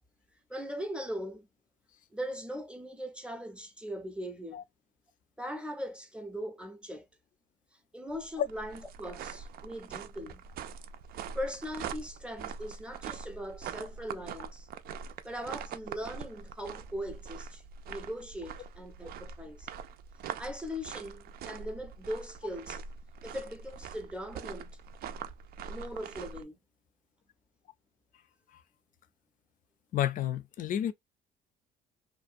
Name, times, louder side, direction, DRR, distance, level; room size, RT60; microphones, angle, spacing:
voice 1, 0.5-1.5 2.1-4.7 5.4-7.1 7.9-10.5 11.3-14.7 15.2-19.7 20.4-22.8 23.2-24.8 25.7-26.6, equal, 5° right, 0.6 m, -40 dB
sound 1, 8.1-26.4, right 7 dB, 65° right, 0.4 m, -43 dB
voice 2, 29.9-30.9, left 11 dB, 50° left, 0.5 m, -30 dB
2.6 x 2.2 x 2.5 m
cardioid pair, 110°, 17 cm